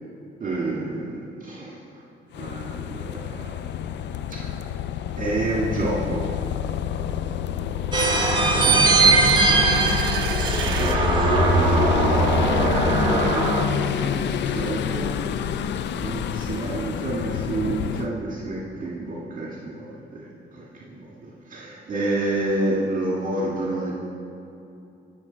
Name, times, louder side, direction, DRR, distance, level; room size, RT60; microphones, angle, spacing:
voice 1, 0.4-1.8 2.3-3.6 4.3-4.5 5.2-6.3 8.6-8.9 10.6-12.7 13.7-15.1 15.9-23.9, right 2 dB, 45° right, -5 dB, 1.9 m, -29 dB
sound 1, 2.3-18.1, left 9 dB, 65° left, 0.4 m, -28 dB
sound 2, 7.9-13.6, right 3 dB, 25° right, 1.4 m, -20 dB
sound 3, 9.4-11.0, right 9 dB, 75° right, 0.7 m, -34 dB
17.0 x 6.1 x 4.1 m, 2.7 s
cardioid pair, 90°, 20 cm